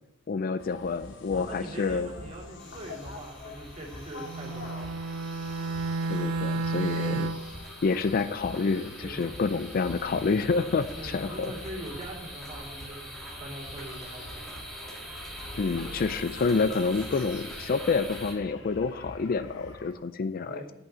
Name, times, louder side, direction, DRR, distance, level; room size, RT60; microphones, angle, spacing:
voice 1, 0.3-2.1 6.1-7.3 7.8-11.5 15.6-20.6, left 4 dB, 45° left, 12 dB, 0.4 m, -28 dB
sound 1, 0.6-19.9, left 2 dB, 60° left, 1.0 m, -46 dB
voice 2, 1.3-5.0 7.0-7.2 9.0-9.2 11.0-13.0 13.4-14.7 20.5-20.7, right 1 dB, 35° right, -3 dB, 2.7 m, -42 dB
sound 2, 2.6-18.3, right 1 dB, ahead, 1.6 m, -44 dB
Bowed string instrument, 4.2-7.6, right 3 dB, 75° right, 0.4 m, -31 dB
8.2 x 5.7 x 7.4 m, 0.94 s
head